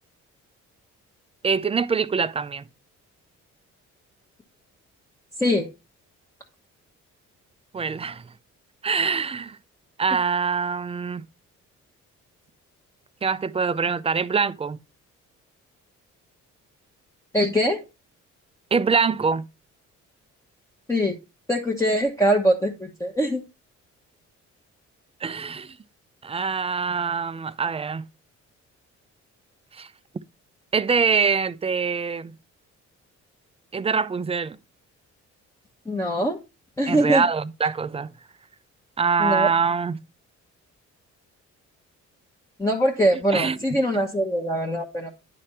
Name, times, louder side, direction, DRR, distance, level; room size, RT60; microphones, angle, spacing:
voice 1, 1.4-2.6 7.7-8.2 8.8-9.6 10.0-11.2 13.2-14.8 18.7-19.4 25.2-25.8 26.2-28.0 29.7-29.9 30.7-32.3 33.7-34.6 36.9-38.1 39.0-40.0 43.3-43.6, right 5 dB, 20° right, 0.4 m, -24 dB
voice 2, 17.3-17.8 20.9-21.2 21.5-23.4 35.9-36.4 36.8-37.2 39.2-39.5 42.6-45.1, equal, 10° left, 1.0 m, -22 dB
9.6 x 3.4 x 4.2 m
cardioid pair, 90°, 30 cm